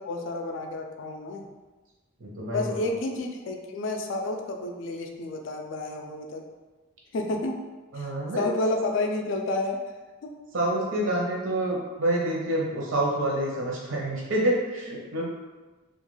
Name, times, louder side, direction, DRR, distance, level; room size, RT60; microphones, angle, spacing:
voice 1, 0.1-1.5 2.5-6.4 7.1-7.5 8.0-8.1 8.4-9.8 10.2-10.3, left 2 dB, 65° left, 3 dB, 0.3 m, -30 dB
voice 2, 2.2-2.6 7.9-8.5 10.5-15.2, right 1 dB, 70° right, -3 dB, 0.7 m, -27 dB
2.4 x 2.2 x 3.1 m, 1.2 s
head